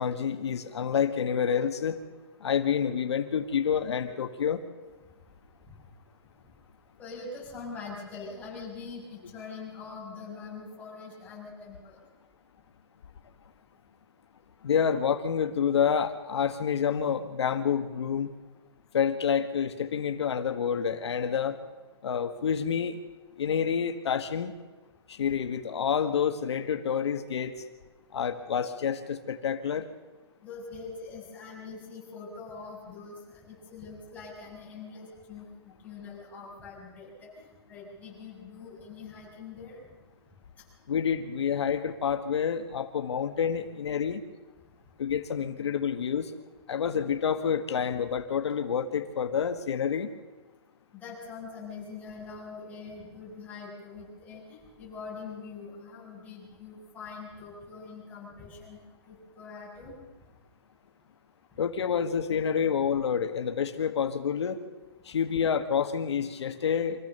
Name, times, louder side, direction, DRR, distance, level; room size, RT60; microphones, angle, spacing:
voice 1, 0.0-2.0 2.4-4.6 14.6-18.3 18.9-21.6 22.0-23.0 23.4-24.5 25.1-27.5 28.1-29.8 40.9-44.2 45.0-46.4 46.7-50.1 61.6-64.6 65.0-67.0, left 7 dB, 85° left, 7 dB, 1.6 m, -28 dB
voice 2, 7.0-12.0 30.4-37.1 37.4-39.8 50.9-58.8 59.1-59.9, left 4 dB, 10° left, -5 dB, 6.5 m, -43 dB
24.5 x 15.5 x 6.8 m, 1.3 s
hypercardioid pair, 165°, 14 cm